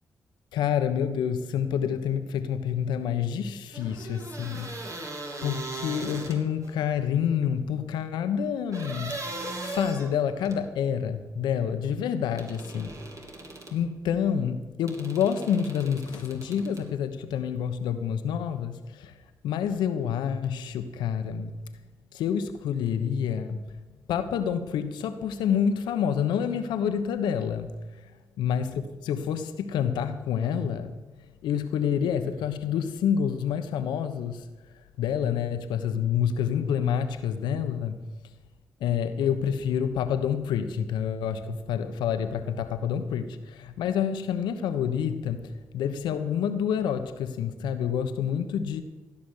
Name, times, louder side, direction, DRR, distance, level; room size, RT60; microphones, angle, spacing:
voice 1, 0.5-5.0 5.4-9.2 9.6-12.9 13.7-19.1 19.4-21.5 22.1-23.6 24.1-27.7 28.4-30.9 31.4-34.5 35.0-38.0 38.8-48.8, left 8 dB, 85° left, 9 dB, 1.1 m, -28 dB
sound 1, 3.7-6.7 8.7-10.7 12.4-13.8 14.9-16.9, right 2 dB, 45° right, 3.0 m, -38 dB
16.0 x 6.1 x 9.9 m, 1.2 s
supercardioid pair, 50°, 7 cm